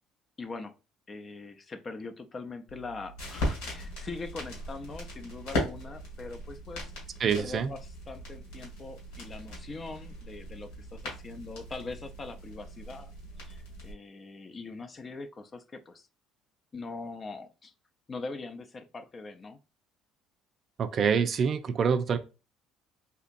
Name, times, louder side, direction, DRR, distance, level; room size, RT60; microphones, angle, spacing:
voice 1, 0.4-0.8 1.1-6.9 7.4-13.1 13.5-16.1 16.7-17.7 18.1-19.6, left 3 dB, 35° left, 0.5 m, -42 dB
sound 1, 2.7-13.9, left 1 dB, 85° left, 1.8 m, -38 dB
voice 2, 7.2-7.7 20.8-22.2, right 6 dB, 50° right, 0.4 m, -26 dB
3.5 x 2.8 x 2.5 m
supercardioid pair, 75°, 0 cm